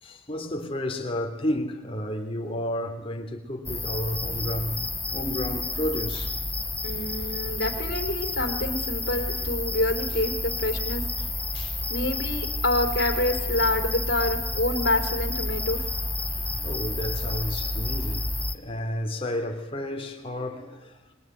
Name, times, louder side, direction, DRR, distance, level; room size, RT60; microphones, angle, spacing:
voice 1, 0.0-4.8 5.1-6.4 10.1-10.2 11.2-11.8 16.2-18.3 18.5-21.1, left 1 dB, 25° left, 3.2 m, -32 dB
sound 1, 3.7-18.6, left 2 dB, 5° left, 1.1 m, -30 dB
voice 2, 6.8-11.0 11.9-15.8, left 1 dB, 50° left, 3.8 m, -27 dB
26.0 x 22.5 x 9.4 m
head